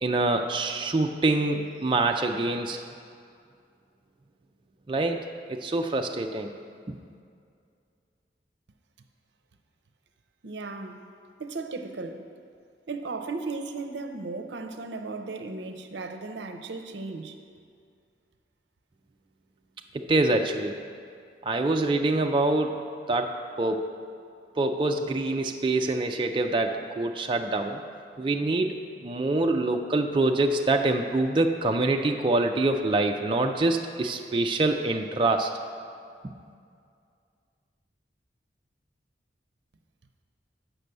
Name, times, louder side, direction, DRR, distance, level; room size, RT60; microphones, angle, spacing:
voice 1, 0.0-2.8 4.9-5.2 5.5-6.5 6.9-7.0 19.9-20.7 21.5-22.8 23.1-23.9 24.6-27.8 28.2-35.5, right 2 dB, 25° right, 4 dB, 0.3 m, -25 dB
voice 2, 10.4-11.0 11.4-12.2 12.9-17.4, right 3 dB, 75° right, 7 dB, 0.6 m, -36 dB
7.8 x 6.0 x 6.7 m, 2.3 s
head